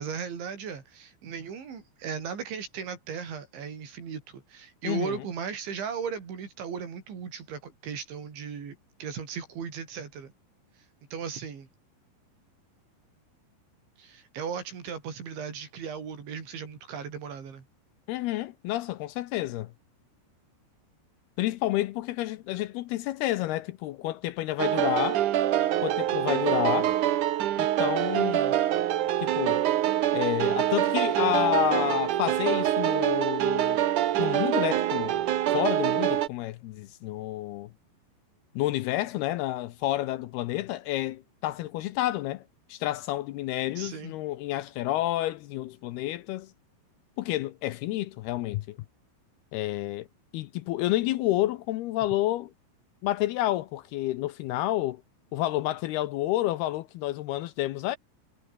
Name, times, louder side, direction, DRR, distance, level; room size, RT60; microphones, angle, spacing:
voice 1, 0.0-10.3 11.1-11.7 14.0-17.7 43.8-44.1, right 7 dB, 85° right, 7.1 m, -37 dB
voice 2, 4.8-5.2 18.1-19.7 21.4-25.2 25.8-27.0 27.6-28.6 29.2-29.6 30.1-33.8 34.2-35.2 35.5-37.7 38.6-42.4 42.7-46.5 47.2-48.8 49.5-50.1 50.3-52.5 53.0-55.0 55.3-58.0, left 15 dB, 75° left, 2.5 m, -29 dB
sound 1, 24.6-36.3, right 12 dB, 65° right, 2.1 m, -25 dB
omnidirectional pair, 5.1 m